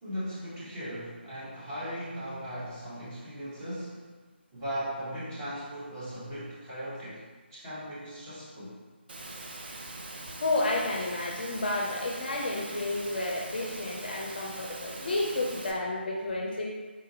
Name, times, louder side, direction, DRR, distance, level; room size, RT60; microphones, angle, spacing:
voice 1, 0.0-4.1 4.5-7.2 7.5-8.8, equal, 20° right, -10 dB, 0.9 m, -38 dB
Engine / Mechanisms, 9.1-15.7, right 2 dB, 55° right, 0.5 m, -42 dB
voice 2, 10.4-16.7, left 2 dB, 50° left, -1 dB, 0.4 m, -31 dB
3.9 x 2.5 x 2.7 m, 1.4 s
figure-of-eight pair, 150°, 6 cm